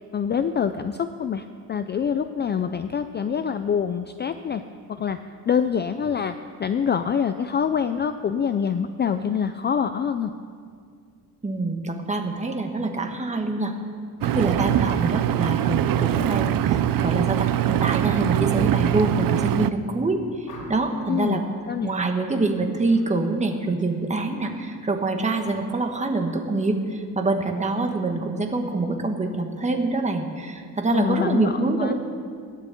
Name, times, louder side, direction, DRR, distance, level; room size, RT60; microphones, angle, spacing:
voice 1, 0.1-4.6 4.9-5.2 5.5-10.3 21.1-21.9 30.9-31.9, left 7 dB, 30° left, 9 dB, 0.4 m, -25 dB
voice 2, 11.4-13.7 14.2-21.4 21.8-31.9, right 3 dB, 20° right, 4 dB, 1.4 m, -25 dB
Engine, 14.2-19.7, right 12 dB, 60° right, 0.6 m, -22 dB
sound 1, 20.4-21.1 22.8-23.1 23.5-23.9, left 1 dB, 70° left, 4.4 m, -44 dB
16.5 x 10.5 x 8.3 m, 2.2 s
cardioid pair, 160°, 38 cm